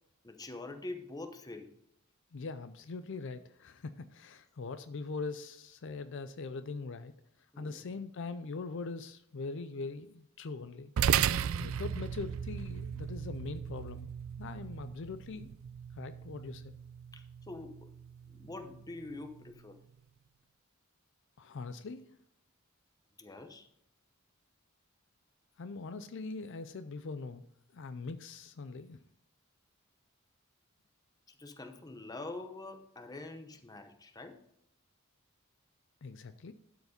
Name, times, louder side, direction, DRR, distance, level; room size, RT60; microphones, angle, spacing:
voice 1, 0.2-1.7 7.5-7.9 17.1-17.9 18.3-19.8 23.2-23.7 31.3-34.4, left 2 dB, 20° left, 7 dB, 0.8 m, -45 dB
voice 2, 2.3-7.1 7.6-10.9 11.6-14.1 14.4-15.5 16.0-16.7 21.4-22.0 25.6-27.4 27.7-29.0 36.0-36.5, left 4 dB, 60° left, 11 dB, 0.5 m, -42 dB
sound 1, 11.0-19.6, right 8 dB, 70° right, 0.3 m, -36 dB
12.0 x 4.8 x 5.1 m, 0.74 s
head